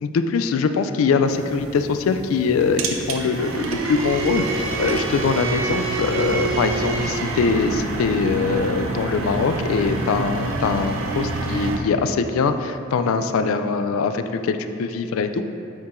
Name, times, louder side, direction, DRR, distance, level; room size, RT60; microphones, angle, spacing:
voice 1, 0.0-15.4, left 4 dB, 75° left, 9 dB, 0.3 m, -22 dB
sound 1, 1.3-11.8, right 3 dB, 75° right, 0.6 m, -27 dB
8.4 x 4.6 x 2.5 m, 2.7 s
head